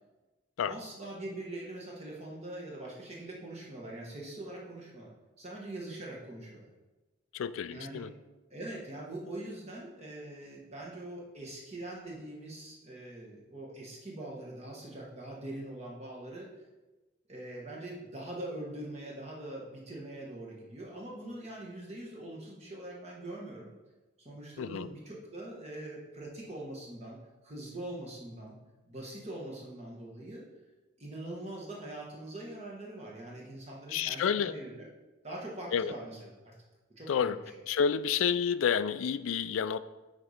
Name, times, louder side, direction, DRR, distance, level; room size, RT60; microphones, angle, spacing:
voice 1, 0.6-6.7 7.7-8.0 8.5-16.5 17.3-23.7 24.2-27.2 27.4-28.6 28.8-30.5 31.0-34.9 35.2-36.5 37.0-37.4, right 1 dB, 30° right, -3 dB, 1.3 m, -43 dB
voice 2, 7.3-8.1 24.6-24.9 33.9-34.5 35.7-35.9 37.1-37.4 37.7-39.8, left 7 dB, 80° left, 15 dB, 0.3 m, -29 dB
8.9 x 4.1 x 5.0 m, 1.1 s
head